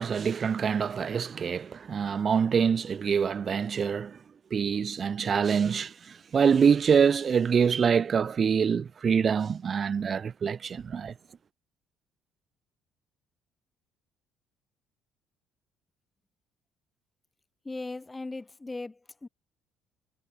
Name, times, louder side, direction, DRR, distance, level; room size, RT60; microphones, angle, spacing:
voice 1, 0.0-4.2 4.5-11.1, right 6 dB, 40° right, 0.3 m, -25 dB
voice 2, 17.6-19.3, left 3 dB, 20° left, 0.6 m, -38 dB
figure-of-eight pair, 50°, 0 cm